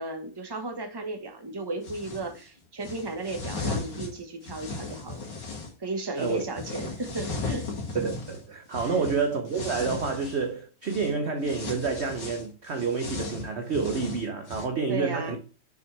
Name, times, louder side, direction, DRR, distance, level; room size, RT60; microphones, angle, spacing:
voice 1, 0.0-5.2 5.8-7.7 8.8-9.0 14.9-15.4, right 2 dB, 15° right, 1.1 m, -35 dB
sound 1, 1.8-2.3 2.8-5.7 6.2-10.5 10.8-11.1 11.4-14.6, left 3 dB, 75° left, 2.6 m, -36 dB
voice 2, 7.9-15.4, right 4 dB, 50° right, 0.9 m, -29 dB
6.5 x 5.7 x 3.3 m
omnidirectional pair, 1.9 m